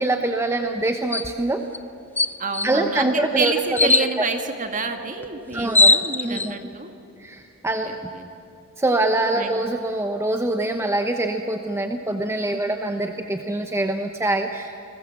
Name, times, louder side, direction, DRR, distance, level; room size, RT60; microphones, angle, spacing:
voice 1, 0.0-1.6 2.6-3.5 3.8-4.2 5.5-5.9 6.2-6.6 7.2-7.9 8.8-14.8, right 2 dB, 10° right, 5 dB, 0.9 m, -24 dB
sound 1, 1.1-1.3 1.7-1.8 2.2-2.7 3.7-4.1 5.2-5.3 5.5-6.5, left 2 dB, 10° left, 0.6 m, -18 dB
voice 2, 2.4-6.9 7.9-8.3 9.4-9.5 12.5-12.8, right 3 dB, 40° right, 6 dB, 2.0 m, -28 dB
29.0 x 21.0 x 7.6 m, 2.8 s
head